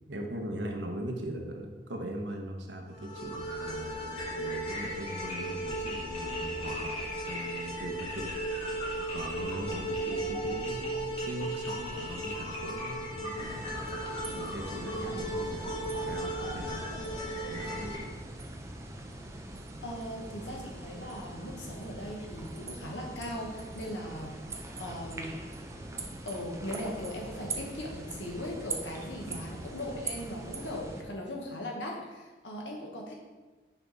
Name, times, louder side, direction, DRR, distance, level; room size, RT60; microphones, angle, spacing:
voice 1, 0.1-13.6 14.3-17.2 17.5-18.1 29.3-29.6, right 1 dB, 80° right, 2 dB, 1.0 m, -40 dB
sound 1, 2.9-18.0, right 1 dB, 35° left, 1.9 m, -36 dB
sound 2, 13.3-31.0, right 2 dB, 15° right, 0.5 m, -42 dB
voice 2, 19.8-25.4 26.2-33.1, left 1 dB, 90° left, 0 dB, 1.3 m, -39 dB
5.8 x 4.6 x 4.0 m, 1.3 s
head